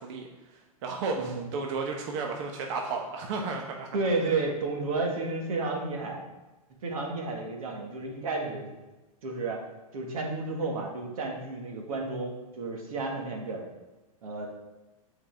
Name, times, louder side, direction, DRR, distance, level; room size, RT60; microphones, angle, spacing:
voice 1, 0.0-4.0, right 4 dB, 50° right, 1 dB, 1.0 m, -33 dB
voice 2, 1.2-1.5 3.9-6.2 6.8-8.7 9.2-9.6 9.9-13.6 14.2-14.5, right 3 dB, 70° right, 0 dB, 1.9 m, -32 dB
7.1 x 4.8 x 4.6 m, 1.1 s
hypercardioid pair, 130°, 19 cm